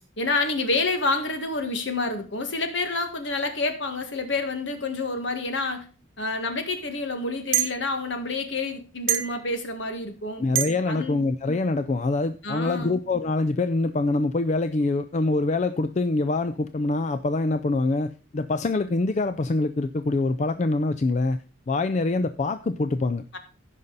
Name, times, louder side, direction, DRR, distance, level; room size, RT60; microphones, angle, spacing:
voice 1, 0.2-5.9 6.2-10.4 10.9-11.2 12.4-12.9 23.3-23.4, left 3 dB, 65° left, 6 dB, 1.7 m, -28 dB
sound 1, 6.2-6.3 7.5-7.8 9.1-9.4 10.5-10.8, right 11 dB, 80° right, 1.1 m, -24 dB
voice 2, 10.4-21.4 21.7-23.2, left 2 dB, 35° left, 10 dB, 0.4 m, -25 dB
16.0 x 5.5 x 4.0 m, 0.37 s
head